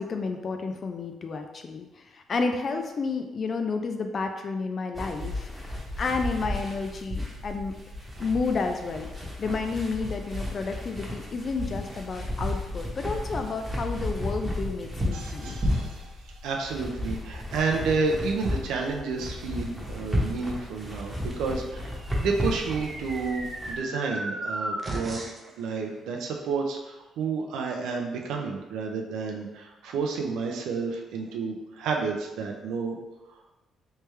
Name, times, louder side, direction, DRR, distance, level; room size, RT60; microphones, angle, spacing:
voice 1, 0.0-7.7 8.2-15.6, left 4 dB, 45° left, 5 dB, 0.4 m, -31 dB
sound 1, 4.9-23.8, left 1 dB, 15° right, 1.0 m, -33 dB
voice 2, 15.1-25.3 25.6-33.0, right 4 dB, 90° right, 1 dB, 0.5 m, -30 dB
sound 2, 21.9-25.5, right 2 dB, 35° right, 0.6 m, -35 dB
3.3 x 3.2 x 3.1 m, 1.0 s
cardioid pair, 90°, 0 cm